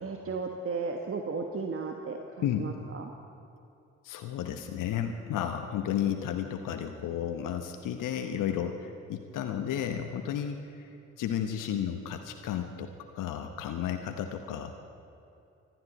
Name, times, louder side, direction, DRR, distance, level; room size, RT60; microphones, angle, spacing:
voice 1, 0.0-3.1, right 4 dB, 40° right, 3 dB, 1.3 m, -35 dB
voice 2, 4.0-10.9 11.2-14.7, left 9 dB, 60° left, 6 dB, 1.0 m, -33 dB
25.0 x 11.5 x 4.2 m, 2.7 s
hypercardioid pair, 40°, 35 cm